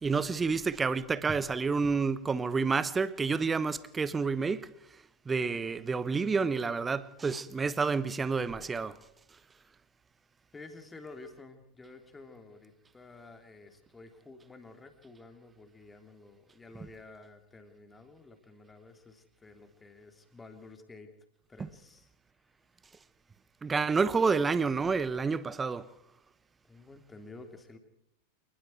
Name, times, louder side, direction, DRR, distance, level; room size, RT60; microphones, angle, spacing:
voice 1, 0.0-4.7 5.2-9.0 21.6-21.7 23.6-25.9, right 4 dB, 15° right, 1.1 m, -29 dB
voice 2, 10.5-21.1 21.5-22.1 26.7-27.8, left 3 dB, 10° left, 3.1 m, -51 dB
27.5 x 20.5 x 4.7 m
figure-of-eight pair, 90°, 0 cm